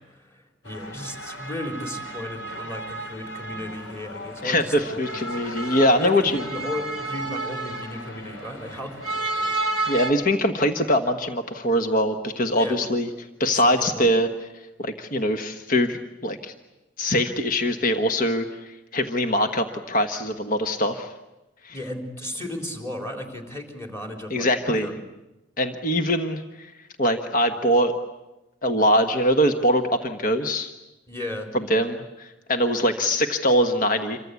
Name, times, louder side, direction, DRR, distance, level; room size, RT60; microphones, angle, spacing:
voice 1, 0.0-5.0 5.6-9.5 12.6-12.9 13.5-14.1 21.7-24.9 31.1-31.5, left 1 dB, 15° left, 3 dB, 4.0 m, -35 dB
sound 1, 0.6-10.1, right 2 dB, 75° left, 3.4 m, -32 dB
voice 2, 4.4-6.4 9.9-13.1 13.4-14.3 14.8-16.5 17.0-21.1 21.6-21.8 24.3-24.9 25.6-26.7 27.0-27.9 28.6-30.7 31.5-34.2, equal, 45° left, 6 dB, 1.4 m, -23 dB
28.0 x 24.0 x 8.4 m, 0.97 s
head